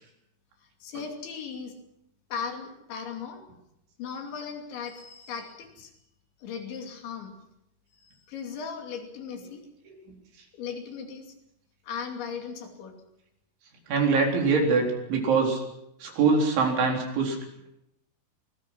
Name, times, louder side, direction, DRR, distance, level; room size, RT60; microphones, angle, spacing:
voice 1, 0.8-1.7 2.3-3.4 4.0-5.9 6.4-7.3 8.0-9.6 10.5-11.3 11.8-13.0, left 6 dB, 70° left, 3 dB, 4.9 m, -37 dB
voice 2, 13.9-15.6 16.0-17.4, right 4 dB, 70° right, 1 dB, 6.3 m, -23 dB
25.5 x 20.5 x 6.2 m, 0.81 s
omnidirectional pair, 5.6 m